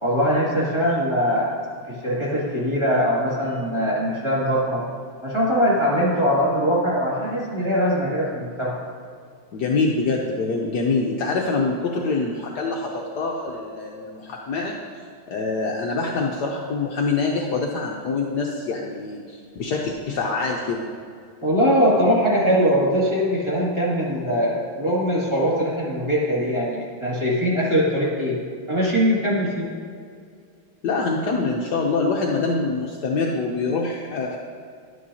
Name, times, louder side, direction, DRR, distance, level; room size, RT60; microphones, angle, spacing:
voice 1, 0.0-1.5 1.9-4.8 5.2-8.8 21.4-28.4 28.7-29.7, equal, 15° right, -7 dB, 2.1 m, -21 dB
voice 2, 9.5-14.7 15.3-20.9 30.8-34.4, left 3 dB, 65° left, -1 dB, 1.2 m, -25 dB
11.0 x 9.4 x 2.8 m, 2.2 s
omnidirectional pair, 2.2 m